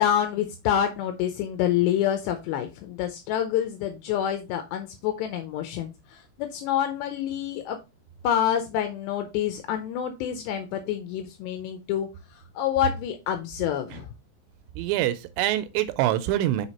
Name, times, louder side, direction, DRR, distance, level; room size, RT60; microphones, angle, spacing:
voice 1, 0.0-7.8 8.2-14.1, left 10 dB, 80° left, 2.8 m, -27 dB
voice 2, 14.8-16.7, right 13 dB, 85° right, 2.9 m, -25 dB
6.4 x 4.9 x 4.2 m
omnidirectional pair, 5.0 m